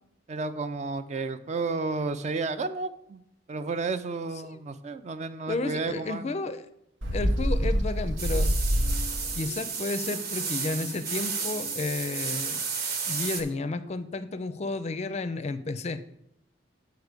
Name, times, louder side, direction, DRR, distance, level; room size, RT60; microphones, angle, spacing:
voice 1, 0.3-3.2 3.5-6.4, right 3 dB, 40° right, 11 dB, 0.4 m, -32 dB
voice 2, 5.5-6.6 7.1-8.5 9.3-12.6 13.1-16.0, left 3 dB, 35° left, 12 dB, 0.4 m, -32 dB
Bird, 7.0-9.5, equal, 85° right, 0.9 m, -26 dB
sound 1, 8.2-13.4, right 5 dB, 55° right, 1.1 m, -32 dB
6.8 x 4.7 x 6.7 m, 0.78 s
head